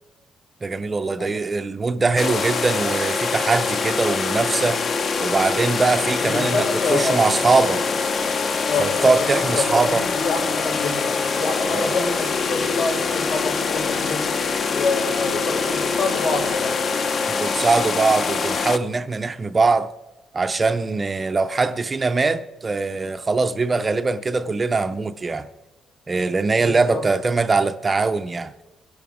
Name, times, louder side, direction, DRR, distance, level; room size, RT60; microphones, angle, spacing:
voice 1, 0.6-4.8 5.2-7.8 8.8-10.0 11.7-11.9 17.3-19.9 20.3-25.5 26.1-28.5, right 3 dB, 20° right, 0.5 m, -22 dB
sound 1, 2.2-18.8, left 5 dB, 35° left, 0.6 m, -24 dB
voice 2, 6.2-7.3 8.6-14.3 14.7-16.7 26.5-27.0, left 3 dB, 80° left, 5.6 m, -27 dB
22.5 x 11.0 x 3.5 m
cardioid pair, 175°, 0 cm